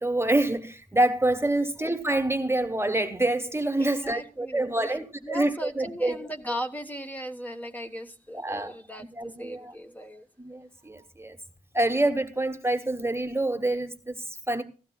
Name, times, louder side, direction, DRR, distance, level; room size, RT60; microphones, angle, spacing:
voice 1, 0.0-6.2 8.3-8.7 9.2-9.7 10.4-11.4 11.7-14.6, right 1 dB, 15° right, 1.2 m, -27 dB
voice 2, 3.8-10.3, equal, 10° left, 1.2 m, -38 dB
15.5 x 14.5 x 2.3 m
cardioid pair, 50°, 14 cm